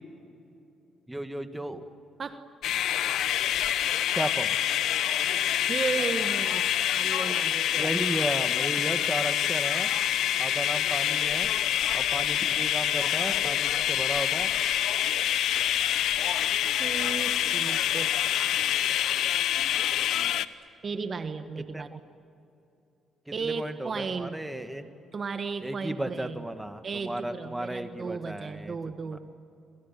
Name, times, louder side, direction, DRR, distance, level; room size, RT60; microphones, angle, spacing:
voice 1, 1.1-1.9 4.1-4.5 7.8-9.9 10.4-11.5 11.9-14.5 20.1-20.4 21.7-21.8 23.3-24.9 25.6-28.8 29.1-29.2, right 1 dB, 10° right, 7 dB, 2.0 m, -34 dB
sound 1, 2.6-20.5, left 11 dB, 80° left, 0.9 m, -26 dB
voice 2, 5.7-7.9 8.9-9.0 16.8-19.0 20.8-21.9 23.3-24.4 25.1-26.4 26.8-29.2, right 5 dB, 40° right, 8 dB, 1.4 m, -35 dB
29.5 x 26.5 x 7.5 m, 2.8 s
cardioid pair, 90°, 0 cm